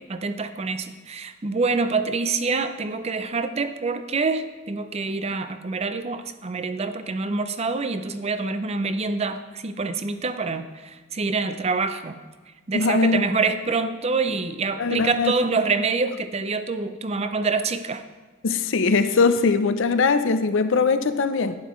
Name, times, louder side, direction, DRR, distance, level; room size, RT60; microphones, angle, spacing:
voice 1, 0.0-12.2 12.7-18.0, right 4 dB, 30° right, 10 dB, 0.5 m, -26 dB
voice 2, 12.7-13.2 14.8-15.3 18.4-21.6, left 4 dB, 65° left, 11 dB, 0.6 m, -21 dB
11.5 x 9.3 x 3.1 m, 1.3 s
head